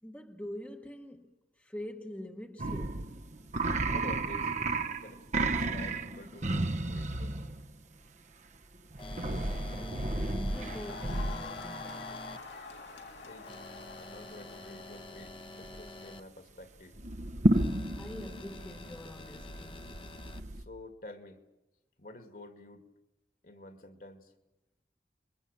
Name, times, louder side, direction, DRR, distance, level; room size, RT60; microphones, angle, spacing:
voice 1, 0.0-3.1 9.7-12.3 18.0-19.9, equal, 10° left, 1.2 m, -45 dB
sound 1, 2.6-7.7 8.9-11.7 15.2-15.3 15.6-16.0 17.0-20.6, right 2 dB, 45° right, 1.0 m, -32 dB
voice 2, 3.9-4.5 4.9-7.5 13.2-13.5 14.0-17.0 20.5-21.4 22.0-22.9 23.4-24.3, left 2 dB, 50° left, 2.3 m, -49 dB
sound 2, 9.0-12.4 13.5-16.2 17.5-20.4, left 2 dB, 30° left, 1.1 m, -47 dB
Crowd, 10.4-15.2, left 4 dB, 85° left, 3.0 m, -46 dB
30.0 x 22.5 x 6.9 m
head